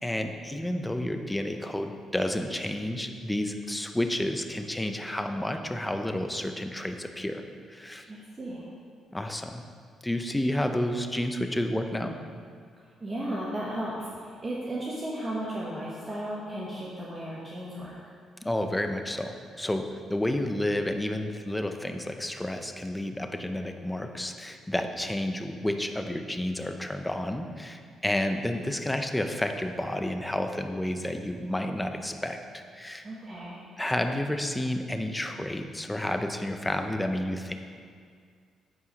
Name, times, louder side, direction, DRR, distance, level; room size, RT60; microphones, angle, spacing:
voice 1, 0.0-7.4 7.7-8.1 9.1-9.6 10.0-12.2 18.4-33.1 33.8-37.5, left 1 dB, 10° left, 6 dB, 0.6 m, -30 dB
voice 2, 8.1-8.6 13.0-17.9 33.0-33.6, right 1 dB, 30° right, -6 dB, 1.2 m, -35 dB
8.4 x 4.7 x 5.1 m, 2.1 s
cardioid pair, 90°, 0 cm